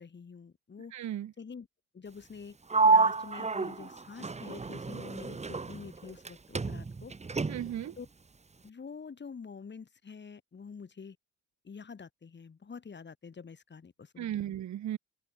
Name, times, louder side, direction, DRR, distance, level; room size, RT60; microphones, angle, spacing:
voice 1, 0.0-0.9 1.4-1.7 1.9-2.6 2.8-7.1 7.9-8.1 8.6-11.2 11.6-14.6, left 5 dB, 35° left, 4.3 m, -47 dB
voice 2, 0.9-1.3 7.5-7.9 14.2-15.0, right 11 dB, 70° right, 2.4 m, -35 dB
Sliding door, 2.7-6.3 6.5-7.9, right 4 dB, 20° right, 1.6 m, -29 dB
open air
cardioid pair, 90°, 30 cm